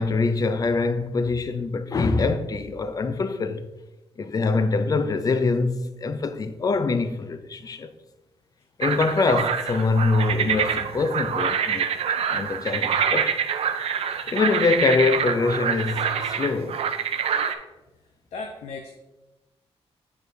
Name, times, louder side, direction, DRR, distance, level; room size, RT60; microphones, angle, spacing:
voice 1, 0.0-3.7 4.2-7.9 8.8-11.9 12.3-13.3 14.3-16.8, left 3 dB, 35° left, 0.4 m, -24 dB
sound 1, 8.8-17.6, right 7 dB, 70° right, 0.5 m, -26 dB
voice 2, 18.3-18.9, left 4 dB, 85° left, 0.7 m, -35 dB
8.5 x 4.7 x 2.6 m
wide cardioid pair, 135°, 11 cm